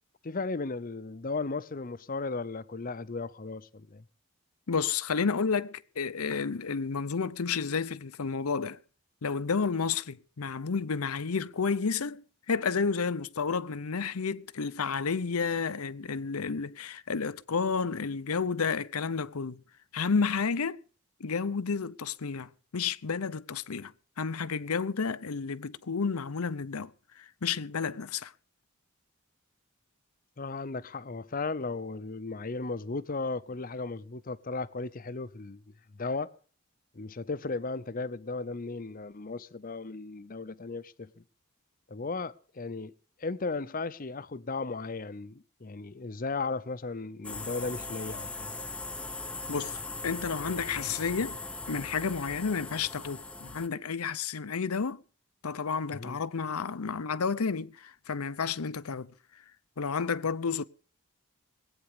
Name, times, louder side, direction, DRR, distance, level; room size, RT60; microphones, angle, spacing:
voice 1, 0.2-4.0 30.4-35.6 36.0-36.4 36.9-41.2 41.9-42.9 43.2-48.5 55.9-56.2, left 3 dB, 40° left, 0.7 m, -36 dB
voice 2, 4.7-8.8 9.2-19.6 19.9-20.8 21.2-23.9 24.2-26.9 27.2-28.3 49.5-51.4 51.7-55.0 55.4-59.1 59.8-60.6, left 5 dB, 85° left, 0.7 m, -31 dB
sound 1, 47.2-53.7, left 3 dB, 5° left, 0.8 m, -39 dB
19.5 x 9.1 x 6.7 m
head